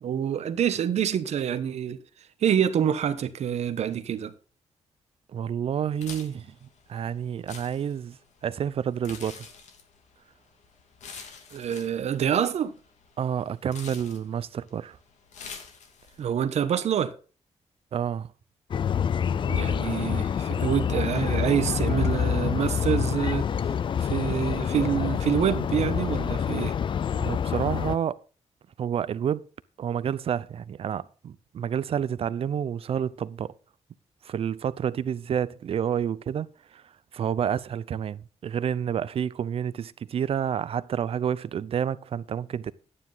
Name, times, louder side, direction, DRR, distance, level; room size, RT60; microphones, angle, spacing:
voice 1, 0.0-2.0 2.4-4.3 11.5-12.7 16.2-17.1 19.5-23.5 24.0-26.7, right 9 dB, 70° right, 1.1 m, -26 dB
voice 2, 5.3-9.5 13.2-15.0 17.9-18.3 27.2-28.2 28.8-29.5 29.8-33.5 34.2-36.8 37.1-42.7, right 8 dB, 55° right, 0.6 m, -29 dB
sound 1, 5.9-16.3, left 5 dB, 85° left, 2.6 m, -47 dB
sound 2, 18.7-27.9, left 8 dB, 45° left, 0.4 m, -27 dB
11.5 x 9.9 x 3.9 m
wide cardioid pair, 155°, 12 cm